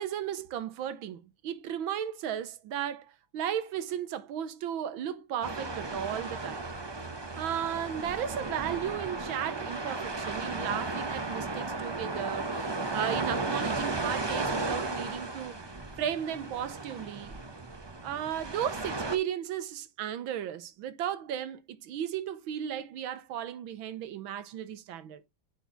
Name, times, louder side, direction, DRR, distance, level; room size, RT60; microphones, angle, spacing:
voice 1, 0.0-6.6 7.4-15.5 16.0-17.4 18.0-25.2, right 10 dB, 90° right, 1.6 m, -35 dB
sound 1, 5.4-19.2, right 3 dB, 30° right, 0.4 m, -35 dB
10.5 x 4.7 x 3.9 m
omnidirectional pair, 2.2 m